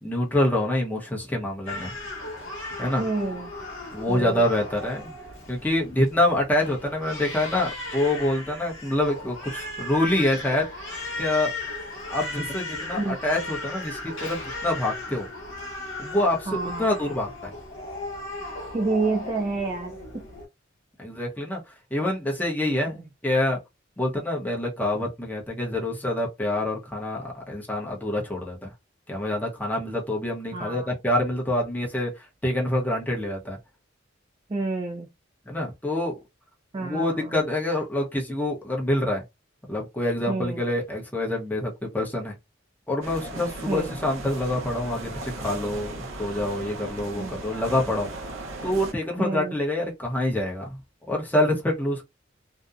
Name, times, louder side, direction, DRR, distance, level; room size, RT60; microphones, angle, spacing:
voice 1, 0.0-1.9 2.8-3.0 3.9-5.1 5.5-10.7 11.2-11.5 12.1-15.3 16.0-17.5 21.0-21.6 21.9-23.6 24.0-28.7 29.1-33.6 35.5-36.1 36.8-39.2 39.7-42.4 42.9-48.1 48.6-50.8 51.1-52.0, left 1 dB, 10° left, 0.7 m, -26 dB
Crying sobbing, 1.7-20.5, left 2 dB, 70° left, 0.9 m, -36 dB
voice 2, 3.0-3.5 4.1-4.5 13.0-13.2 16.5-16.9 18.7-20.3 22.9-23.1 30.5-30.9 34.5-35.1 36.7-37.4 40.3-40.6 43.7-44.0 47.2-47.4 49.2-49.6, right 3 dB, 25° right, 0.4 m, -29 dB
sound 1, 43.0-48.9, right 2 dB, 75° right, 0.7 m, -37 dB
2.6 x 2.0 x 2.4 m
head